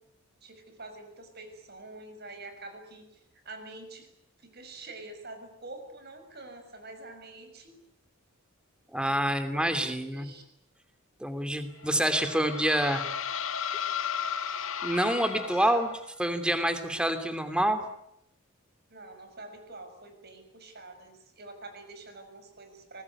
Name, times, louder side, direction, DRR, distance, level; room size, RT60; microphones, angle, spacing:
voice 1, 0.4-3.2 3.4-4.1 4.4-7.8 9.5-10.4 15.4-15.9 16.3-16.4 18.9-23.0, right 2 dB, 50° right, 7 dB, 6.5 m, -46 dB
voice 2, 8.9-10.3 11.2-13.0 14.8-15.9 16.2-17.8, right 1 dB, 5° right, 9 dB, 2.9 m, -27 dB
sound 1, 11.8-16.1, left 7 dB, 75° left, 1.8 m, -34 dB
25.5 x 20.5 x 9.7 m, 0.75 s
head